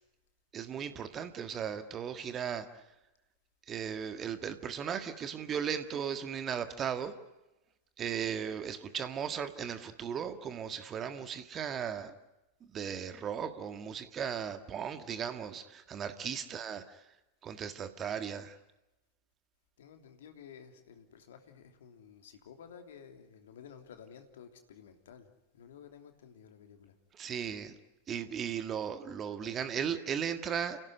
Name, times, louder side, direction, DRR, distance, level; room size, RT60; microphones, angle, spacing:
voice 1, 0.5-2.8 3.7-7.1 8.0-12.2 12.6-17.0 17.4-18.6 27.1-27.8 28.1-30.8, right 8 dB, 25° right, 1.7 m, -36 dB
voice 2, 19.8-26.9, left 7 dB, 60° left, 3.1 m, -53 dB
29.5 x 17.0 x 9.5 m
figure-of-eight pair, 90°, 0 cm